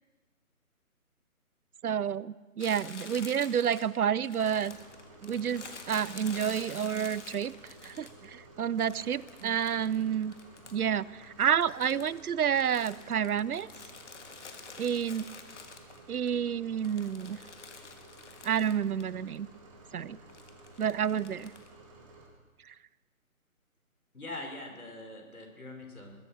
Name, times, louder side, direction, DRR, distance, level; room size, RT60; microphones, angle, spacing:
voice 1, 1.8-4.8 5.2-7.5 7.8-10.3 10.7-13.7 14.8-15.3 16.1-17.4 18.4-19.5 19.9-20.2 20.8-21.5 22.7-22.8, right 8 dB, 80° right, 22 dB, 0.6 m, -29 dB
Crumpling crinkling, 2.6-8.3 8.8-11.0 11.2-16.3 16.7-19.1 19.3-19.4 20.3-21.7, left 4 dB, 55° left, 1.7 m, -48 dB
sound 1, 4.4-22.3, right 2 dB, 20° right, 1.7 m, -54 dB
voice 2, 24.1-26.1, left 2 dB, 75° left, 2 dB, 4.2 m, -43 dB
21.0 x 8.7 x 6.1 m, 1.3 s
figure-of-eight pair, 150°, 43 cm